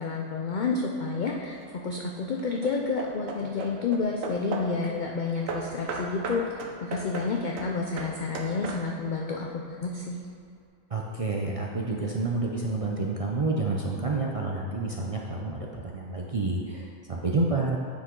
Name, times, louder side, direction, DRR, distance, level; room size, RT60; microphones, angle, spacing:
voice 1, 0.0-1.6 1.8-6.4 6.8-10.2, left 4 dB, 60° left, 0 dB, 0.5 m, -30 dB
Hammer / Wood, 1.3-1.7 2.4-4.8 5.5-9.1, right 3 dB, 80° right, 1.2 m, -37 dB
voice 2, 10.9-17.8, right 3 dB, 50° right, -2 dB, 0.4 m, -29 dB
9.6 x 5.0 x 3.8 m, 2.4 s
omnidirectional pair, 1.3 m